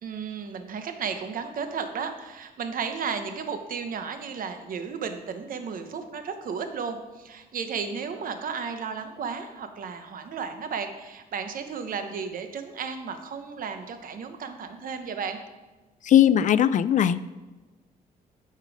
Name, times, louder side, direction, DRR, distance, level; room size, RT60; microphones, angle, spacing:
voice 1, 0.0-15.4, right 6 dB, 65° right, 8 dB, 1.0 m, -34 dB
voice 2, 16.0-17.2, left 10 dB, 55° left, 16 dB, 0.4 m, -19 dB
9.0 x 5.5 x 4.9 m, 1.2 s
cardioid pair, 90°, 16 cm